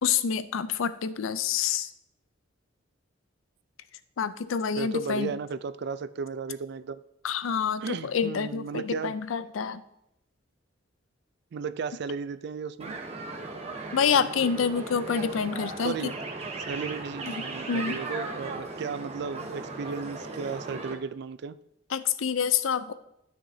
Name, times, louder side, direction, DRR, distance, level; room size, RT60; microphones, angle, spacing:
voice 1, 0.0-1.9 4.2-5.3 7.2-9.8 13.9-16.1 17.3-18.0 21.9-22.9, left 6 dB, 80° left, 14 dB, 0.5 m, -27 dB
voice 2, 4.8-7.0 7.8-9.1 11.5-13.0 15.8-16.1 16.7-21.6, right 5 dB, 55° right, 14 dB, 0.3 m, -34 dB
sound 1, 12.8-20.9, right 3 dB, 30° right, 1.0 m, -37 dB
12.5 x 6.1 x 2.7 m, 0.82 s
head